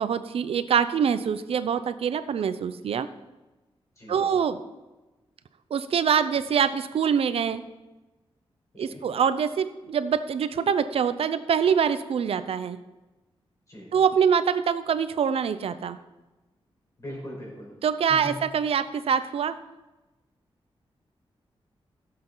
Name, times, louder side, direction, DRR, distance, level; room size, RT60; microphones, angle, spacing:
voice 1, 0.0-3.1 4.1-4.6 5.7-7.6 8.8-12.8 13.9-16.0 17.8-19.6, right 7 dB, 80° right, 12 dB, 0.7 m, -24 dB
voice 2, 4.0-4.3 8.7-9.0 13.7-13.9 17.0-17.7 18.1-18.4, left 1 dB, 35° left, -3 dB, 4.9 m, -40 dB
16.5 x 7.7 x 4.0 m, 1.1 s
wide cardioid pair, 160°, 10 cm